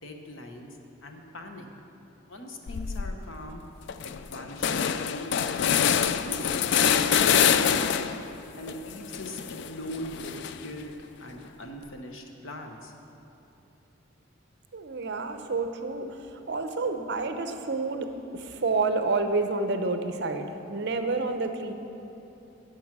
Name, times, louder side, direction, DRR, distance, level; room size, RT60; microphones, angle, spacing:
voice 1, 0.0-0.7 1.0-1.7 2.2-3.6 4.0-5.7 6.2-8.2 8.6-10.4 10.6-10.9 11.2-12.9, left 1 dB, 75° left, 4 dB, 1.1 m, -41 dB
sound 1, 2.7-3.1 3.6-3.7 3.9-8.3 8.7-10.8, left 8 dB, 55° left, 0.3 m, -25 dB
voice 2, 14.7-21.7, right 3 dB, 55° right, 7 dB, 0.7 m, -29 dB
10.5 x 7.9 x 6.1 m, 3.0 s
head